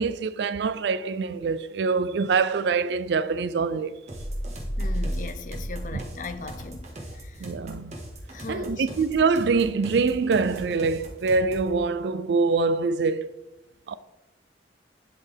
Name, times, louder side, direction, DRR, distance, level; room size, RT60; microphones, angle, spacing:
voice 1, 0.0-4.0 7.4-8.0 8.5-13.4 13.9-14.0, right 4 dB, 70° right, 0.4 m, -24 dB
sound 1, 4.1-6.8, equal, 10° left, 0.9 m, -32 dB
sound 2, 4.1-11.8, right 1 dB, 40° right, 1.6 m, -41 dB
voice 2, 4.8-7.5 8.3-8.9, left 3 dB, 45° left, 0.6 m, -39 dB
11.0 x 4.2 x 3.4 m
head